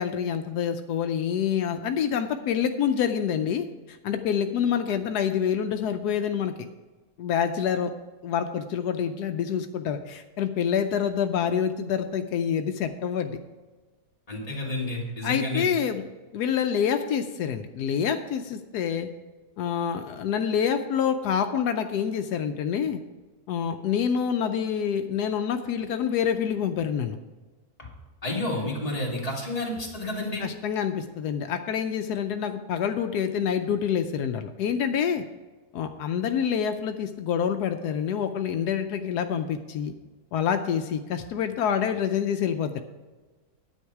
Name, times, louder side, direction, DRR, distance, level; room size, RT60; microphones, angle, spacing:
voice 1, 0.0-6.5 7.2-7.9 8.2-13.4 15.2-16.0 16.3-19.1 19.6-23.0 23.5-27.2 30.4-35.2 35.7-39.9 40.3-42.8, left 8 dB, 85° left, 7 dB, 1.2 m, -27 dB
voice 2, 14.3-15.6 28.2-30.4, left 1 dB, 25° left, -3 dB, 2.5 m, -30 dB
10.0 x 8.7 x 4.7 m, 1.2 s
omnidirectional pair, 1.7 m